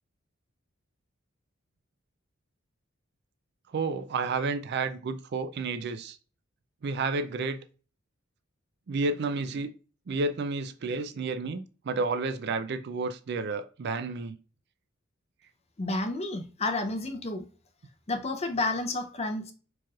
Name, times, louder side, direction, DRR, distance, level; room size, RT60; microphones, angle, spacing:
voice 1, 3.7-6.2 6.8-7.6 8.9-9.7 10.1-14.4, right 3 dB, 55° right, 0.4 m, -31 dB
voice 2, 15.8-17.4 18.1-19.5, left 2 dB, 30° left, 0.6 m, -30 dB
4.6 x 3.0 x 2.4 m
head